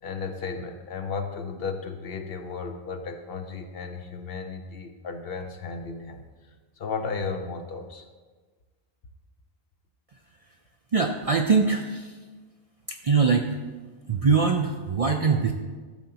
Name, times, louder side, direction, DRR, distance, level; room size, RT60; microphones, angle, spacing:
voice 1, 0.0-6.3 6.8-8.1 15.2-15.4, left 5 dB, 65° left, 6 dB, 0.9 m, -34 dB
voice 2, 10.9-12.2 12.9-13.5 14.1-15.5, right 5 dB, 50° right, 3 dB, 0.4 m, -22 dB
12.0 x 6.7 x 2.8 m, 1.4 s
omnidirectional pair, 1.1 m